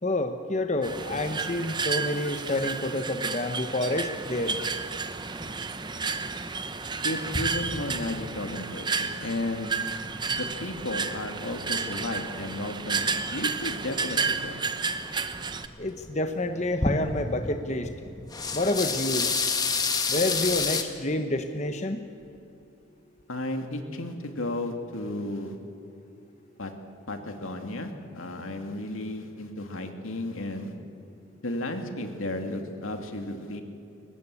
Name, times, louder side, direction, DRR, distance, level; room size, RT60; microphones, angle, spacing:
voice 1, 0.0-4.6 15.8-17.9 18.5-19.3 20.1-22.1, left 1 dB, 35° left, 7 dB, 1.0 m, -28 dB
sound 1, 0.8-15.7, right 5 dB, 20° right, 0.8 m, -32 dB
voice 2, 7.0-9.8 10.3-14.7 23.3-25.5 26.6-26.7 27.1-30.7 31.4-33.6, left 1 dB, 80° left, 5 dB, 2.5 m, -34 dB
sound 2, 7.3-11.0 11.3-12.3 12.6-12.7 13.1-14.5 14.9-16.1 16.4-17.5 17.8-20.8, left 4 dB, 20° left, 1.4 m, -30 dB
22.5 x 20.0 x 8.4 m, 2.7 s
head